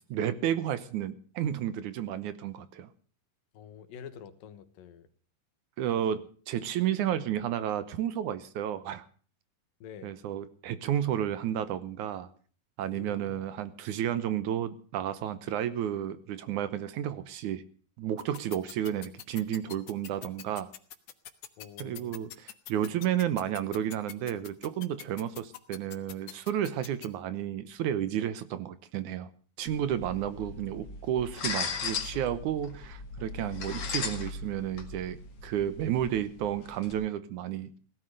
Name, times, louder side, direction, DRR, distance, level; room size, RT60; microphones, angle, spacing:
voice 1, 0.1-2.9 5.8-9.1 10.0-12.3 12.8-17.6 18.0-20.7 21.8-29.3 29.6-35.2 35.4-37.8, right 10 dB, 70° right, 13 dB, 2.2 m, -32 dB
voice 2, 3.5-5.1 5.9-6.2 9.8-10.1 12.9-13.5 21.6-22.3, left 7 dB, 90° left, 10 dB, 3.1 m, -47 dB
sound 1, 18.2-27.1, left 12 dB, 65° left, 2.5 m, -43 dB
sound 2, 29.7-36.9, left 5 dB, 45° left, 2.7 m, -38 dB
17.5 x 12.5 x 6.6 m, 0.43 s
omnidirectional pair, 3.9 m